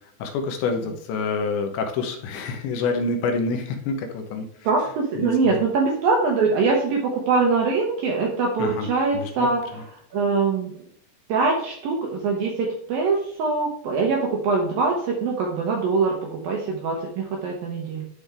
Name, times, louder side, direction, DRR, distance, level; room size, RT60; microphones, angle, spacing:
voice 1, 0.2-4.5 5.2-5.6 8.6-9.5 9.7-9.8, left 4 dB, 75° left, 4 dB, 3.0 m, -27 dB
voice 2, 4.6-9.8 10.1-10.7 11.3-18.1, right 4 dB, 75° right, 0 dB, 2.2 m, -23 dB
11.5 x 4.3 x 3.4 m, 0.66 s
omnidirectional pair, 5.4 m